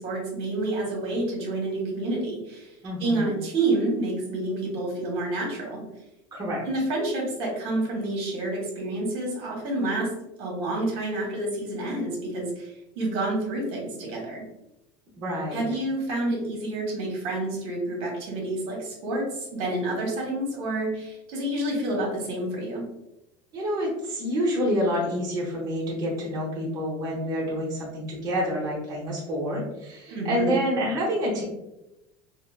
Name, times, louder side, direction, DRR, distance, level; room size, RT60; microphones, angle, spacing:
voice 1, 0.0-5.8 6.6-10.1 10.4-14.4 15.5-22.9 30.1-30.6, right 2 dB, 60° right, -2 dB, 1.1 m, -29 dB
voice 2, 2.8-3.3 6.3-6.6 15.2-15.6 23.5-31.4, equal, 35° right, -6 dB, 0.9 m, -28 dB
4.0 x 2.0 x 2.3 m, 0.92 s
supercardioid pair, 140°, 11 cm